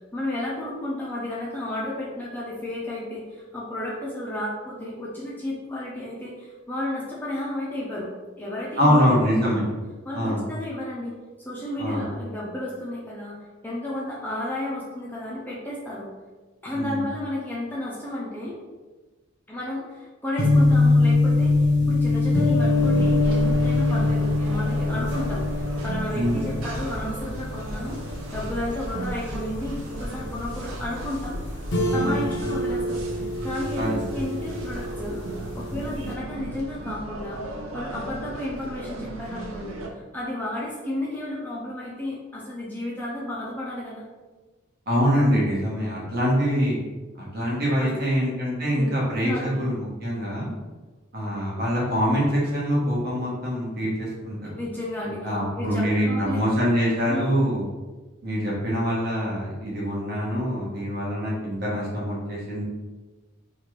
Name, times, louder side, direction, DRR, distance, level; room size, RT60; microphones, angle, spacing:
voice 1, 0.1-8.1 8.4-9.5 10.0-11.2 11.4-13.4 13.6-16.1 16.6-18.6 19.5-31.4 31.9-33.0 33.4-35.3 35.5-39.8 40.1-44.0 47.8-48.1 48.8-48.9 49.1-49.7 54.4-56.4 57.0-57.3, left 1 dB, 10° left, -6 dB, 0.4 m, -32 dB
voice 2, 8.8-9.6 10.1-10.4 11.8-12.0 16.7-17.0 26.1-26.5 31.9-32.2 33.7-34.0 44.9-46.8 47.3-50.5 51.1-54.5 55.2-57.7 58.2-62.6, equal, 50° right, -5 dB, 1.0 m, -24 dB
sound 1, 20.4-36.1, left 2 dB, 60° left, 0.6 m, -24 dB
sound 2, 22.7-39.9, right 1 dB, 85° right, 0.5 m, -35 dB
3.0 x 2.4 x 3.0 m, 1.3 s
head